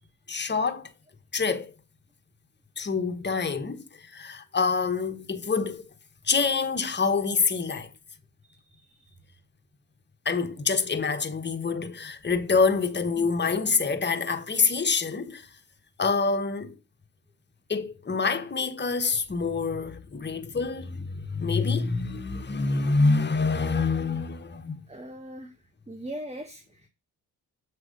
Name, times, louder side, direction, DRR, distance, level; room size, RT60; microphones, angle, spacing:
voice 1, 0.3-0.9 1.3-1.7 2.8-5.8 6.2-7.9 10.2-15.5 16.0-16.8 17.7-24.8, left 4 dB, 25° left, 1.2 m, -26 dB
voice 2, 8.5-9.1 10.4-10.5 13.2-13.3 24.9-25.5 25.9-26.9, right 1 dB, 15° right, 1.1 m, -41 dB
7.4 x 3.3 x 5.1 m
supercardioid pair, 60°, 42 cm